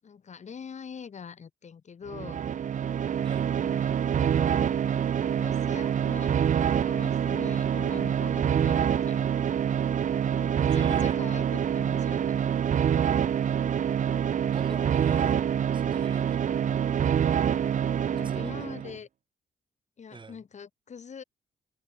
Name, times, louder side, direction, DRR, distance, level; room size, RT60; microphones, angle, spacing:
voice 1, 0.0-2.4 3.5-4.0 5.3-6.3 6.7-9.3 10.2-12.4 18.1-19.1 20.0-21.2, left 6 dB, 50° left, 7.3 m, -43 dB
sound 1, 2.1-18.9, right 8 dB, 55° right, 1.3 m, -26 dB
voice 2, 10.7-11.2 14.5-15.4 15.7-16.6 18.2-19.0 20.1-20.4, right 4 dB, 35° right, 3.3 m, -42 dB
cardioid pair, 70°, 15 cm